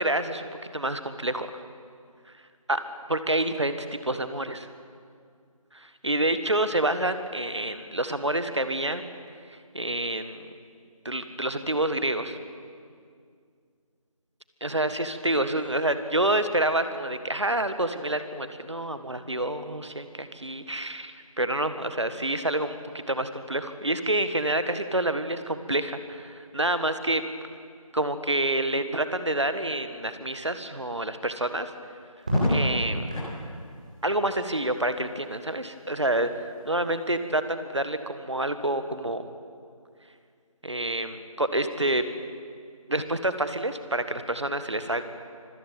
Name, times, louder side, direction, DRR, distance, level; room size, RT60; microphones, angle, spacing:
voice 1, 0.0-1.6 2.7-2.8 3.1-3.8 4.0-4.7 5.7-9.0 9.7-10.5 11.0-12.4 14.6-27.2 27.9-31.7 32.5-33.1 34.0-39.2 40.6-42.0 42.9-45.0, right 1 dB, 50° right, 10 dB, 1.6 m, -28 dB
Crackle, 32.2-33.3 34.9-35.5, equal, 10° right, 5.1 m, -27 dB
25.0 x 15.5 x 9.1 m, 2.2 s
figure-of-eight pair, 180°, 19 cm